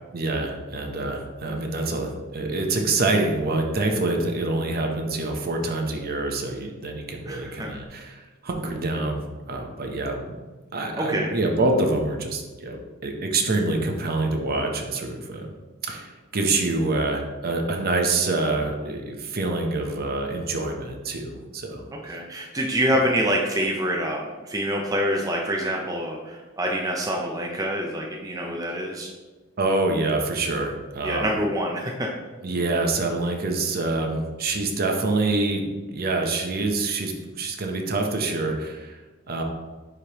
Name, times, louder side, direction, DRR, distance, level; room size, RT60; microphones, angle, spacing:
voice 1, 0.1-9.2 9.5-10.4 10.7-15.5 15.8-22.2 29.6-31.3 32.4-35.7 35.9-39.0 39.3-39.4, right 2 dB, 45° right, 3 dB, 0.8 m, -26 dB
voice 2, 7.3-7.7 11.0-11.3 22.0-29.1 31.0-32.1, equal, 15° right, -1 dB, 0.6 m, -26 dB
9.8 x 3.3 x 2.9 m, 1.3 s
head